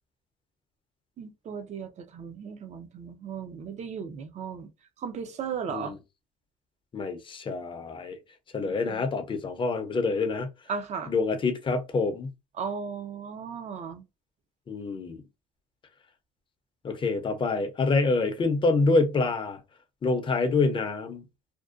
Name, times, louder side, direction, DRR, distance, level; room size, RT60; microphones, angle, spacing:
voice 1, 1.2-4.7 5.0-6.0 8.6-9.1 10.7-11.1 12.6-14.0, right 6 dB, 45° right, 0.5 m, -36 dB
voice 2, 6.9-8.2 8.5-10.5 11.1-12.3 14.7-15.2 16.8-19.6 20.0-21.2, left 3 dB, 30° left, 0.5 m, -26 dB
2.5 x 2.1 x 2.4 m
cardioid pair, 110°, 17 cm